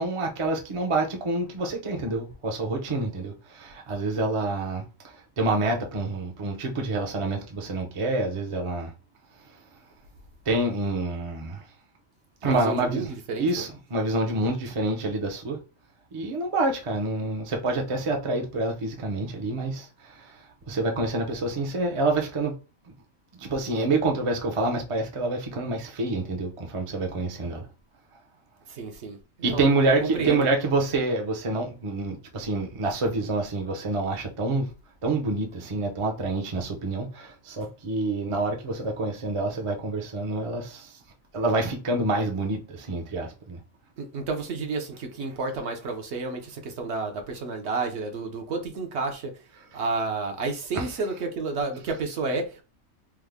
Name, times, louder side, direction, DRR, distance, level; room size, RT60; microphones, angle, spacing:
voice 1, 0.0-8.9 10.5-11.6 12.4-13.1 13.4-15.6 16.1-22.6 23.4-27.6 29.4-34.7 35.0-41.0 41.3-43.6 49.7-49.8 50.7-50.9, right 2 dB, 40° right, 0.4 m, -27 dB
voice 2, 12.4-13.6 28.7-29.7 30.0-30.4 44.0-49.3 49.7-52.6, right 3 dB, 60° right, 0.9 m, -31 dB
3.4 x 2.1 x 3.4 m
omnidirectional pair, 1.4 m